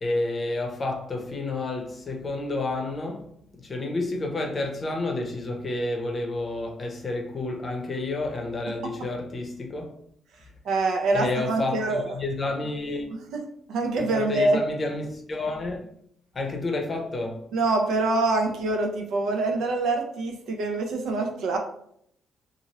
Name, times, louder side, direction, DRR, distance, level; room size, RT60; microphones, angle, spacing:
voice 1, 0.0-3.3 3.6-9.9 11.1-11.8 12.1-13.1 14.0-15.9 16.3-17.4, left 2 dB, 35° left, 0.7 m, -30 dB
voice 2, 10.6-12.2 13.1-13.4 13.7-14.6 17.5-21.6, right 2 dB, 75° right, 0.6 m, -25 dB
2.8 x 2.5 x 2.9 m
cardioid pair, 90°, 0 cm